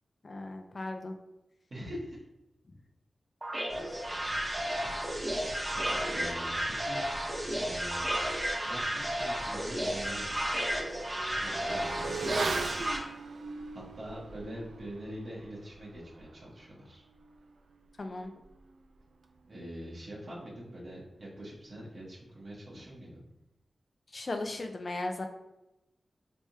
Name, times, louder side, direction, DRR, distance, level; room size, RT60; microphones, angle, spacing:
voice 1, 0.2-1.2 18.0-18.3 24.1-25.3, left 2 dB, 50° left, 5 dB, 0.5 m, -36 dB
voice 2, 1.7-2.3 4.7-5.2 5.7-7.0 7.5-8.1 8.6-10.5 11.4-12.6 13.7-17.0 19.4-23.2, equal, 65° right, -6 dB, 1.1 m, -44 dB
sound 1, 3.4-13.0, right 1 dB, 20° right, 0.9 m, -33 dB
Motorcycle / Accelerating revving vroom, 9.2-9.3 9.7-19.7 20.0-20.1, right 4 dB, 90° right, 0.3 m, -41 dB
3.3 x 3.3 x 2.8 m, 0.94 s
cardioid pair, 60°, 0 cm